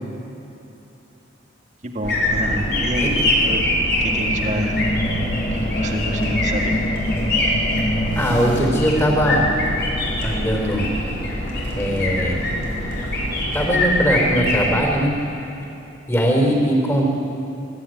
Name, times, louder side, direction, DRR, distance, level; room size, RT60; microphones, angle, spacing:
voice 1, 1.8-3.6 4.0-4.8 5.5-6.8, right 1 dB, 40° right, 2 dB, 1.7 m, -28 dB
sound 1, 2.0-14.7, left 1 dB, 55° left, 5.0 m, -23 dB
sound 2, 4.0-10.8, equal, 35° left, 1.4 m, -27 dB
voice 2, 8.1-9.5 10.2-10.9 11.8-12.5 13.5-15.2 16.1-17.1, equal, 15° left, 1 dB, 3.8 m, -20 dB
24.0 x 13.5 x 9.3 m, 3.0 s
head